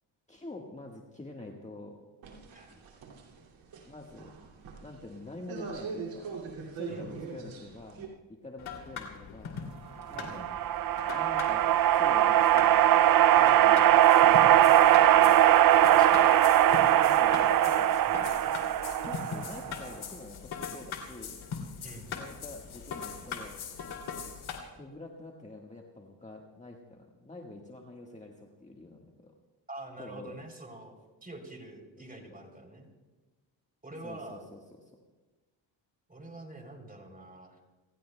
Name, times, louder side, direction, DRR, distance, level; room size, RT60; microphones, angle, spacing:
voice 1, 0.3-2.1 3.8-4.3 4.8-6.4 6.7-9.6 10.1-10.4 11.1-11.7 11.9-13.1 13.4-13.8 14.2-15.4 16.9-17.9 19.0-21.4 22.1-23.8 24.7-29.3 30.0-30.5 32.2-32.4 34.0-34.6, left 2 dB, 15° left, 0 dB, 1.5 m, -46 dB
sound 1, 2.2-8.1, right 5 dB, 75° right, 2.6 m, -42 dB
sound 2, 8.6-24.6, left 6 dB, 75° left, 2.8 m, -41 dB
voice 2, 10.1-10.5 15.9-16.3 18.1-18.5 21.8-22.2 29.7-31.0 31.2-32.9 33.8-34.5 36.1-37.6, right 2 dB, 15° right, 3 dB, 3.3 m, -46 dB
sound 3, 10.1-19.7, right 12 dB, 45° right, 0.5 m, -21 dB
28.5 x 16.0 x 2.2 m, 1.2 s
cardioid pair, 80°, 48 cm